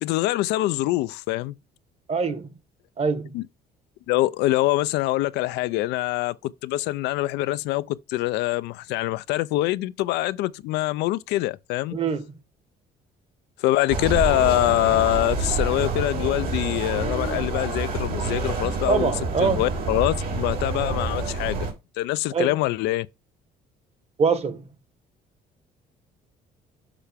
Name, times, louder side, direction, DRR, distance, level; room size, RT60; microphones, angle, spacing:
voice 1, 0.0-1.5 3.3-3.4 4.1-11.9 13.6-19.1 19.4-21.7 22.0-23.1, left 17 dB, 85° left, 0.5 m, -24 dB
voice 2, 2.1-2.5 3.0-3.3 11.9-12.2 18.9-19.6 22.3-22.5 24.2-24.6, right 5 dB, 35° right, 1.3 m, -23 dB
sound 1, 13.9-21.7, right 3 dB, 65° right, 2.8 m, -27 dB
6.8 x 5.6 x 3.5 m
cardioid pair, 110°, 17 cm